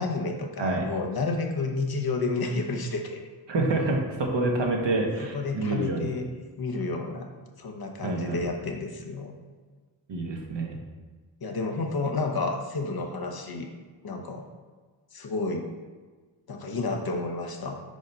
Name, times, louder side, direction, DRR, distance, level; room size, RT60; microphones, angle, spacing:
voice 1, 0.0-3.2 5.2-6.3 6.6-7.3 7.6-9.4 11.4-13.7 14.0-14.5 15.1-15.7 16.5-17.8, left 3 dB, 50° left, 3 dB, 0.9 m, -30 dB
voice 2, 3.5-6.1 8.0-8.4 10.1-10.8, right 2 dB, 65° right, 1 dB, 1.2 m, -27 dB
5.1 x 4.2 x 5.3 m, 1.4 s
cardioid pair, 80°, 46 cm